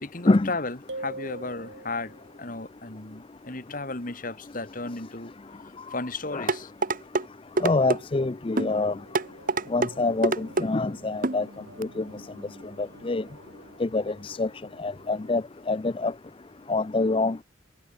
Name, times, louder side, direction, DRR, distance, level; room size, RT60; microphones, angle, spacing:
voice 1, 0.0-6.7, left 3 dB, 40° left, 2.0 m, -35 dB
sound 1, 0.9-2.4, right 2 dB, 60° right, 4.3 m, -39 dB
sound 2, 6.5-7.3 7.6-8.0 8.6-8.7 9.1-9.9 10.2-10.7 11.2-11.4 11.8-11.9, right 3 dB, 45° right, 1.2 m, -25 dB
voice 2, 7.6-9.0 9.7-11.5 11.8-12.0 12.8-13.2 13.8-14.5 14.8-16.1 16.7-17.4, left 3 dB, 25° left, 0.5 m, -25 dB
sound 3, 8.0-15.4, right 1 dB, 80° right, 6.0 m, -51 dB
head